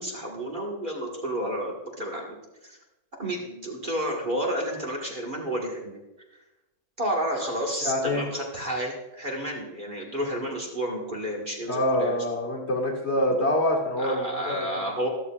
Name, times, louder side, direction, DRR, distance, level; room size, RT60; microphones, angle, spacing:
voice 1, 0.0-2.4 2.6-2.8 3.2-6.0 7.0-12.2 13.1-13.5 14.0-15.1, equal, 25° right, -2 dB, 1.6 m, -31 dB
voice 2, 7.8-8.2 11.7-14.7, left 1 dB, 30° left, -1 dB, 1.9 m, -25 dB
13.5 x 13.0 x 2.4 m, 1.0 s
omnidirectional pair, 2.3 m